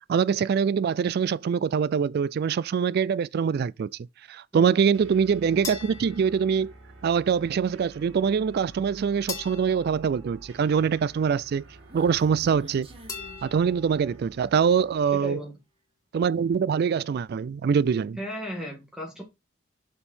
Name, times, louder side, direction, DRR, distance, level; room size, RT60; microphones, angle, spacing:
voice 1, 0.1-3.9 4.3-6.7 7.0-11.6 11.9-12.9 13.4-15.4 16.1-18.2, right 6 dB, 55° right, 0.3 m, -24 dB
sound 1, 4.9-15.3, right 2 dB, 90° right, 1.7 m, -49 dB
sound 2, 5.6-7.1 9.3-11.1 13.1-14.2, left 5 dB, 15° left, 3.2 m, -41 dB
Human voice, 11.4-14.3, equal, 30° right, 1.3 m, -48 dB
voice 2, 15.1-15.5 18.2-19.2, equal, 5° right, 1.8 m, -35 dB
6.9 x 5.3 x 4.4 m
head